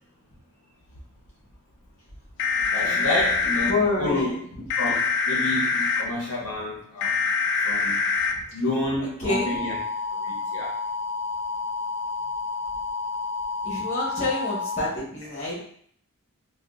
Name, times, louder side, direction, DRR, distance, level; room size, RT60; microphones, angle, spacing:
sound 1, 2.4-3.7 4.7-6.0 7.0-8.3 9.3-14.9, left 4 dB, 55° left, 0.3 m, -26 dB
voice 1, 2.7-4.3 4.8-7.2 7.6-8.1 8.5-9.8 10.1-10.8, left 1 dB, 70° left, -4 dB, 0.7 m, -29 dB
voice 2, 3.7-4.4 8.3-8.4 9.2-9.6 13.6-15.6, left 2 dB, 35° left, -6 dB, 1.2 m, -27 dB
3.6 x 2.3 x 2.4 m, 0.62 s
head